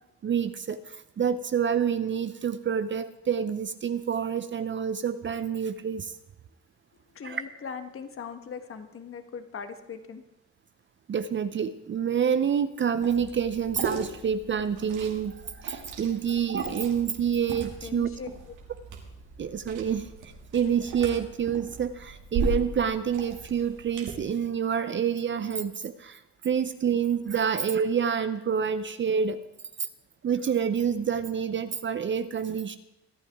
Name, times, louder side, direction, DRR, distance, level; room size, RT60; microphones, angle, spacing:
voice 1, 0.2-6.1 7.2-7.4 11.1-18.1 19.4-20.1 20.5-29.4 30.2-32.8, right 7 dB, 40° right, 12 dB, 0.7 m, -28 dB
voice 2, 7.1-10.2 17.8-18.3, left 6 dB, 45° left, 8 dB, 1.4 m, -40 dB
Liquid, 13.0-24.1, right 3 dB, 85° right, 2.4 m, -37 dB
24.5 x 9.1 x 3.6 m, 0.91 s
cardioid pair, 90°, 30 cm